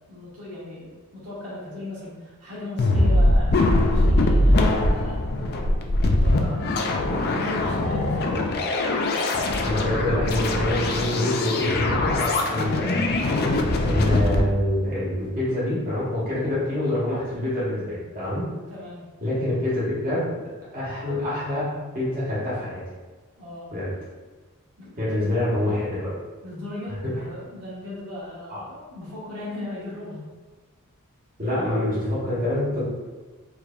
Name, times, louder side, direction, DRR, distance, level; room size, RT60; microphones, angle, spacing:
voice 1, 0.1-5.2 6.2-6.7 7.2-8.2 18.7-19.0 23.4-23.7 24.8-25.4 26.4-30.2, left 1 dB, 80° right, -9 dB, 1.5 m, -37 dB
sound 1, 2.8-14.4, left 1 dB, 45° left, 0.4 m, -22 dB
voice 2, 9.6-13.1 13.8-18.5 19.2-20.4 20.7-21.7 21.9-22.8 23.7-23.9 25.0-26.1 27.0-27.1 28.5-28.6 31.4-32.8, left 1 dB, 40° right, -10 dB, 1.4 m, -26 dB
4.7 x 2.7 x 2.3 m, 1.3 s
head